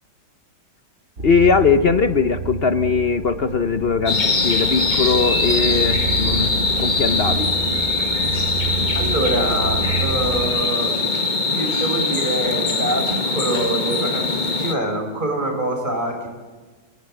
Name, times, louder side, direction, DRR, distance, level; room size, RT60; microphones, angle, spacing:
voice 1, 1.2-7.6, left 5 dB, 50° left, 10 dB, 0.7 m, -20 dB
sound 1, 1.2-10.5, right 4 dB, 45° right, 1.8 m, -29 dB
sound 2, 4.1-14.7, left 3 dB, 25° left, 1.6 m, -22 dB
voice 2, 8.9-11.0 11.5-14.3 14.6-16.2, right 1 dB, 25° right, 3 dB, 5.7 m, -25 dB
29.5 x 17.5 x 7.9 m, 1.3 s
omnidirectional pair, 1.9 m